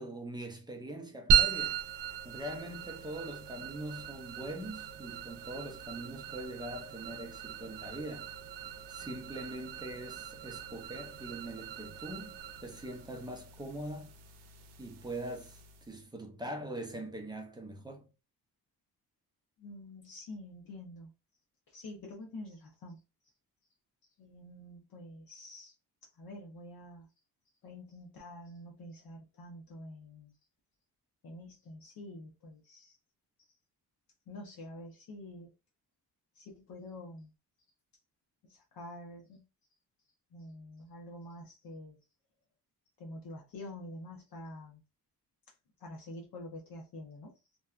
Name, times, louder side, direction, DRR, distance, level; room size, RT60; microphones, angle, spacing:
voice 1, 0.0-1.8 2.2-8.3 8.9-14.1 14.8-18.1, right 1 dB, 10° right, 0.5 m, -42 dB
sound 1, 1.3-16.0, right 7 dB, 80° right, 0.6 m, -36 dB
voice 2, 19.6-21.1 21.7-23.0 24.2-25.7 26.0-27.1 27.6-30.3 31.2-33.0 34.3-35.5 36.3-37.3 38.4-39.5 40.3-42.0 43.0-44.8 45.8-47.4, left 1 dB, 60° left, 0.8 m, -47 dB
2.8 x 2.2 x 2.3 m
cardioid pair, 115°, 40 cm